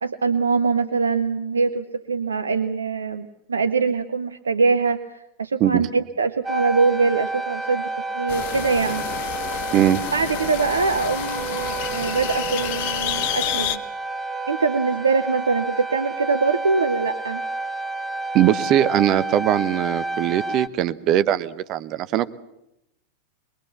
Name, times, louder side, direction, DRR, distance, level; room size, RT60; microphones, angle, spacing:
voice 1, 0.0-7.9 8.1-9.0 10.1-13.8 14.5-17.4, right 4 dB, 75° right, 9 dB, 0.8 m, -23 dB
sound 1, 6.4-20.7, right 3 dB, 10° right, 1.1 m, -30 dB
sound 2, 8.3-13.8, left 11 dB, 50° left, 1.1 m, -29 dB
voice 2, 18.3-22.3, right 11 dB, 35° right, 13 dB, 0.9 m, -20 dB
22.0 x 21.5 x 7.2 m, 0.85 s
figure-of-eight pair, 90°, 0 cm